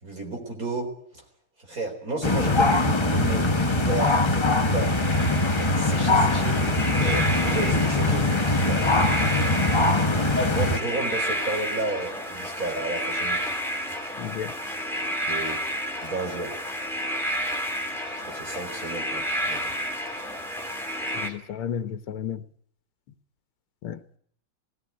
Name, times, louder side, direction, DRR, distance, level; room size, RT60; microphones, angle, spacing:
voice 1, 0.0-1.2 1.7-4.9 5.7-9.0 10.3-13.5 15.2-15.6 16.0-16.5 18.0-19.7, right 2 dB, 40° right, 4.6 m, -32 dB
sound 1, 2.2-10.8, left 2 dB, 20° left, 0.7 m, -22 dB
sound 2, 4.7-21.3, equal, ahead, 2.9 m, -31 dB
voice 2, 14.2-14.5 21.1-22.4 23.8-24.0, left 8 dB, 90° left, 1.9 m, -33 dB
18.5 x 16.5 x 9.5 m
omnidirectional pair, 2.3 m